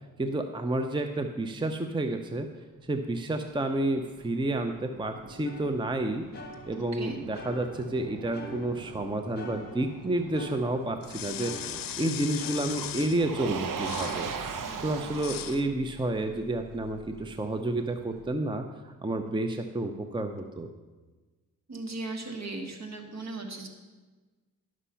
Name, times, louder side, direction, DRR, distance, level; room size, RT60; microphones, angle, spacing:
voice 1, 0.2-2.5 2.9-6.2 6.7-14.3 14.8-20.7, right 2 dB, 15° right, 6 dB, 0.6 m, -30 dB
Motor vehicle (road), 3.2-18.2, right 5 dB, 70° right, 0.8 m, -41 dB
sound 1, 5.4-7.0 7.3-9.0 9.3-11.0 11.4-13.5, equal, 30° left, 1.5 m, -46 dB
voice 2, 6.8-7.2 21.7-23.7, right 3 dB, 50° right, 3 dB, 1.7 m, -37 dB
sound 2, 11.0-13.3 13.8-14.3 15.1-15.6, left 12 dB, 75° left, 0.5 m, -38 dB
11.0 x 6.2 x 5.6 m, 1.3 s
cardioid pair, 75°, 34 cm